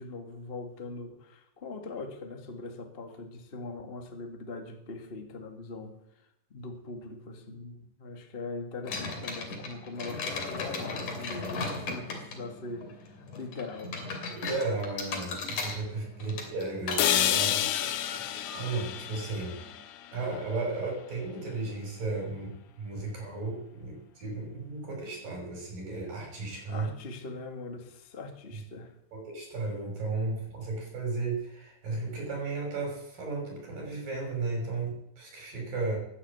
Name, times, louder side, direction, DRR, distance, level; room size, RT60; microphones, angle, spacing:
voice 1, 0.0-14.1 26.7-28.9, left 3 dB, 25° left, 5 dB, 1.4 m, -41 dB
sound 1, 8.8-19.8, left 3 dB, 65° left, 4.1 m, -38 dB
voice 2, 14.3-18.1 18.5-19.6 20.1-22.5 22.8-26.9 29.1-36.0, right 3 dB, 75° right, 0 dB, 7.6 m, -34 dB
sound 2, 17.0-21.0, left 11 dB, 90° left, 2.7 m, -30 dB
15.5 x 10.0 x 8.3 m, 0.79 s
omnidirectional pair, 3.9 m